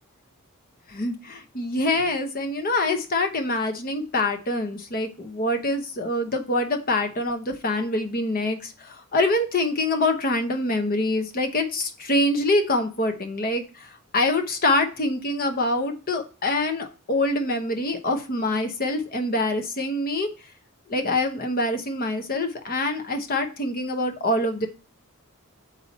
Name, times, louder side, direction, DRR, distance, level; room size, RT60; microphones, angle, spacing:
voice 1, 0.9-20.3 20.9-24.7, left 2 dB, 40° left, 6 dB, 0.9 m, -25 dB
7.5 x 4.2 x 4.2 m, 0.33 s
head